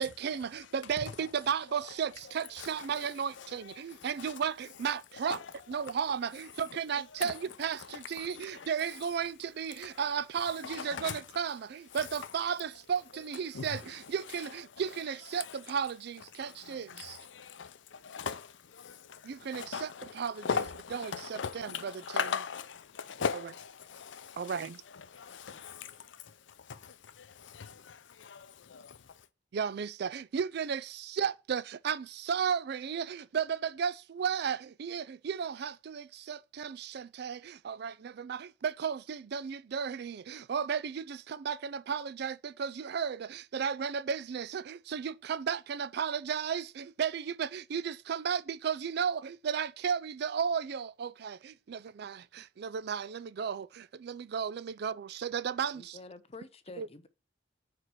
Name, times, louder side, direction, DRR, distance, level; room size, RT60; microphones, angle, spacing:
voice 1, 0.0-5.4 5.7-17.2 19.2-19.9 20.1-20.5 21.3-21.9 24.4-24.8 29.5-56.0 56.8-56.9, right 7 dB, 60° right, 0.4 m, -34 dB
voice 2, 2.2-4.4 5.1-6.0 6.5-6.6 7.1-7.5 7.8-8.7 9.8-11.2 11.9-12.4 13.5-15.0 15.3-15.6 16.4-29.3, left 6 dB, 85° left, 0.6 m, -41 dB
voice 3, 55.7-57.1, left 3 dB, 35° left, 0.7 m, -48 dB
4.9 x 4.7 x 6.0 m
head